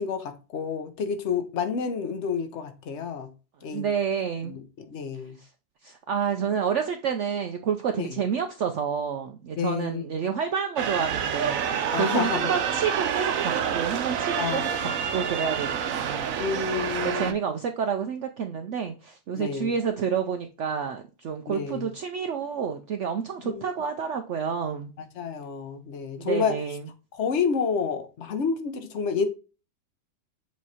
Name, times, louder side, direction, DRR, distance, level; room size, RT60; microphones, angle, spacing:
voice 1, 0.0-3.3 3.6-3.9 4.5-5.4 8.0-8.2 9.6-10.0 11.9-12.5 14.4-14.9 16.4-17.4 19.4-19.7 21.5-21.9 23.4-23.7 25.1-26.6 27.1-29.3, left 6 dB, 50° left, 0.9 m, -29 dB
voice 2, 3.7-4.5 5.4-5.5 5.8-16.4 17.0-24.9 26.2-26.8, right 7 dB, 85° right, 0.6 m, -29 dB
sound 1, 10.8-17.3, right 8 dB, 60° right, 1.0 m, -28 dB
7.4 x 3.1 x 4.1 m
omnidirectional pair, 1.9 m